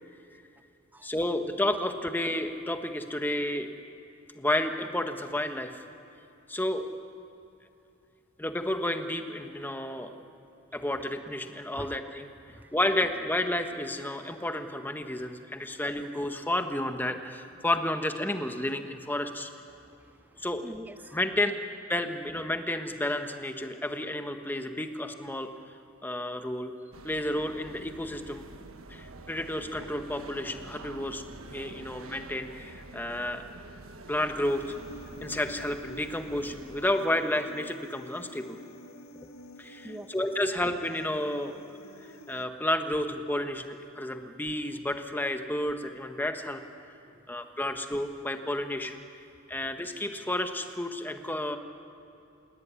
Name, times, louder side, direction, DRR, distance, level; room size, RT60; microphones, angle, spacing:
voice 1, 1.0-3.7 4.4-5.8 6.5-6.9 8.4-10.2 10.7-12.3 12.7-19.5 20.4-20.6 21.1-21.5 21.9-25.5 26.0-26.7 27.0-28.4 28.9-33.4 34.1-34.7 35.2-38.6 39.6-41.6 42.3-46.6 47.3-49.0 49.5-51.6, left 1 dB, 10° left, 6 dB, 1.4 m, -31 dB
voice 2, 19.8-21.2 31.8-31.9 39.8-40.1 47.1-47.2, right 1 dB, 10° right, 14 dB, 0.5 m, -46 dB
sound 1, 26.9-36.9, right 2 dB, 90° right, 1.3 m, -47 dB
Human voice, 34.4-42.4, equal, 85° left, 1.8 m, -49 dB
29.0 x 17.5 x 9.8 m, 2.7 s
head